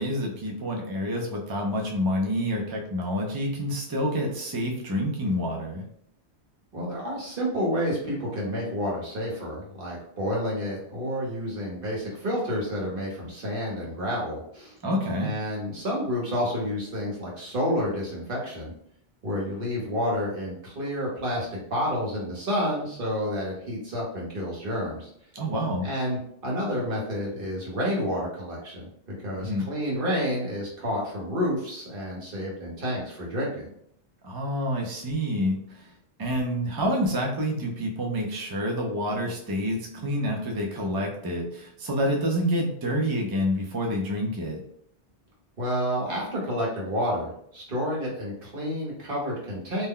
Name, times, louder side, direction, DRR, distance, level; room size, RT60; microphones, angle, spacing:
voice 1, 0.0-5.9 14.8-15.3 25.3-25.9 29.4-29.7 34.2-35.9 36.2-44.6, equal, 40° right, 0 dB, 0.3 m, -28 dB
voice 2, 6.7-14.8 15.2-18.7 19.2-25.1 25.8-28.9 29.2-33.7 45.6-49.9, equal, 55° right, -4 dB, 1.2 m, -29 dB
2.7 x 2.1 x 3.7 m, 0.68 s
omnidirectional pair, 1.1 m